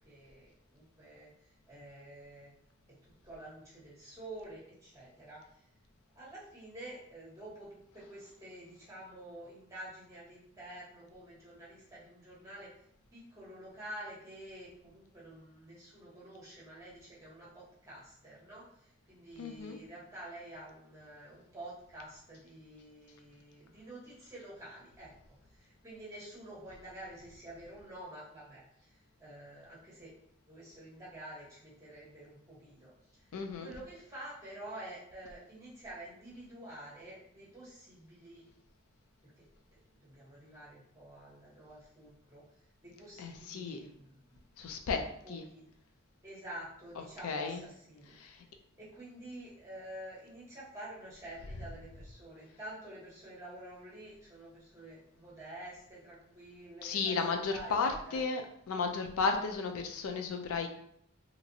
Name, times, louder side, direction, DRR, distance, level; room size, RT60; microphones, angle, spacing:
voice 1, 0.0-1.3 1.7-2.5 2.9-3.0 3.2-5.4 6.1-12.7 13.1-25.1 25.5-28.9 29.2-30.1 30.5-32.9 33.6-38.4 39.2-39.4 39.7-42.4 42.8-44.1 44.9-45.6 46.2-48.1 48.8-57.1 57.5-58.2, right 1 dB, 15° right, -7 dB, 1.1 m, -49 dB
voice 2, 19.4-19.8 33.3-33.7 43.2-43.8 44.6-45.0 45.3-45.4 47.2-47.6 48.2-48.3 56.8-58.4 58.7-60.7, left 4 dB, 90° left, 4 dB, 0.4 m, -33 dB
2.9 x 2.5 x 2.6 m, 0.71 s
head